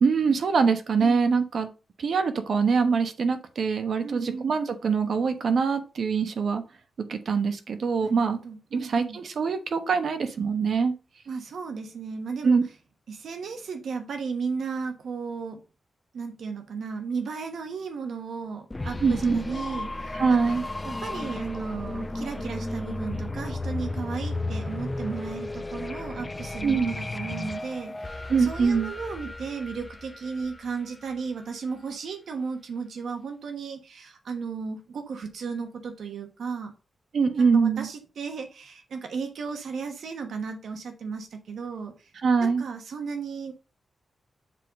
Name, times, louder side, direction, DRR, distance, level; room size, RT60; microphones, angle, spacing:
voice 1, 0.0-1.7 2.0-6.6 7.1-8.4 8.7-10.9 12.4-12.6 19.0-19.4 20.1-20.6 26.6-26.9 28.3-28.9 37.1-37.9 42.2-42.6, right 5 dB, 60° right, 1.1 m, -23 dB
voice 2, 4.0-4.6 8.0-9.2 11.3-12.6 13.1-15.6 16.1-20.4 20.8-36.7 37.4-42.1 42.4-43.5, right 5 dB, 85° right, 1.2 m, -35 dB
sound 1, 18.7-31.4, left 2 dB, 20° left, 0.5 m, -34 dB
7.4 x 3.8 x 5.2 m
wide cardioid pair, 165°, 0 cm